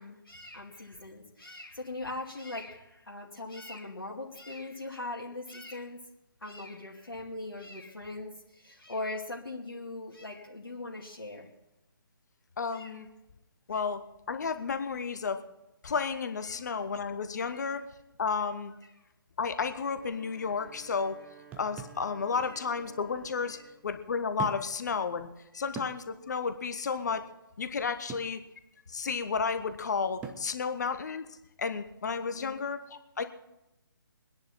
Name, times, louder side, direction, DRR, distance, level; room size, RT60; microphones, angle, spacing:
voice 1, 0.0-6.0 6.4-11.5 12.7-13.0 13.7-13.8 16.5-16.7 17.5-17.6 23.5-23.6 25.5-25.7 26.7-26.8 32.3-32.6, left 2 dB, 70° left, -3 dB, 2.4 m, -41 dB
voice 2, 12.6-13.1 13.7-15.4 15.8-17.9 18.2-18.7 19.4-21.2 21.6-23.6 23.8-25.3 25.5-27.2 27.6-28.4 28.9-31.3 31.6-33.2, left 5 dB, 50° left, 9 dB, 1.1 m, -32 dB
Wind instrument woodwind instrument, 19.8-23.9, right 6 dB, 45° right, 2.7 m, -54 dB
sound 1, 21.5-22.1 23.2-23.3 24.4-24.8 25.2-25.3 25.8-26.0 28.1-28.4 30.2-30.5, right 6 dB, 10° right, 0.8 m, -41 dB
22.5 x 10.5 x 4.4 m, 0.93 s
figure-of-eight pair, 140°, 12 cm